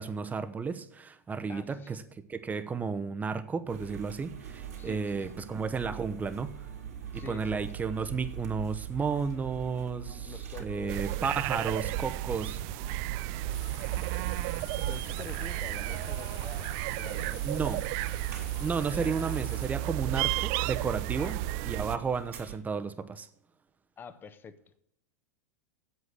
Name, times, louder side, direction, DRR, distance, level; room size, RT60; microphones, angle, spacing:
voice 1, 0.0-2.0 2.3-6.5 7.1-10.3 10.6-12.6 17.4-17.8 18.6-23.3, right 5 dB, 20° right, 11 dB, 0.9 m, -33 dB
voice 2, 1.5-2.0 4.8-5.3 7.1-7.6 10.3-11.2 14.9-17.9 18.8-19.2 21.2-21.4 24.0-24.6, left 6 dB, 25° left, 12 dB, 1.0 m, -47 dB
sound 1, 3.7-22.6, right 10 dB, 70° right, 2.5 m, -42 dB
sound 2, 10.9-22.0, right 17 dB, 50° right, 0.4 m, -33 dB
sound 3, 13.5-19.7, left 10 dB, 70° left, 1.1 m, -49 dB
8.1 x 8.0 x 7.8 m, 0.72 s
hypercardioid pair, 100°, 9 cm